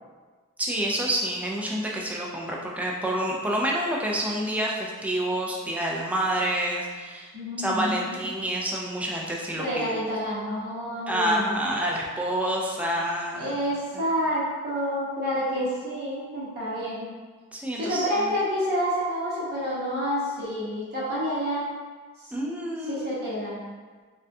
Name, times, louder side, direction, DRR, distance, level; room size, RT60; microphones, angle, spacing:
voice 1, 0.6-7.3 7.6-9.9 11.1-13.5 13.9-14.0 17.5-18.3 22.3-23.1, right 1 dB, 5° right, -2 dB, 0.3 m, -28 dB
voice 2, 7.3-8.2 9.6-11.6 13.3-17.1 17.7-21.7 22.2-22.3 22.9-23.6, equal, 50° right, -9 dB, 0.8 m, -28 dB
3.6 x 2.2 x 2.6 m, 1.4 s
head